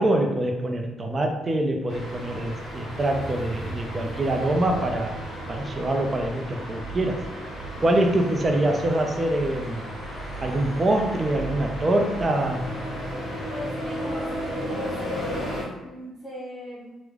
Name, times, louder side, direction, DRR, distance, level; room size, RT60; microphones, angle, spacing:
voice 1, 0.0-5.2 5.5-7.2 7.8-9.8 10.4-12.6, right 1 dB, 20° right, 3 dB, 0.4 m, -24 dB
sound 1, 1.9-15.6, equal, 55° left, 1.4 m, -34 dB
voice 2, 13.5-16.9, left 1 dB, 5° left, -12 dB, 1.0 m, -40 dB
3.1 x 2.0 x 3.5 m, 1.1 s
cardioid pair, 160°, 0 cm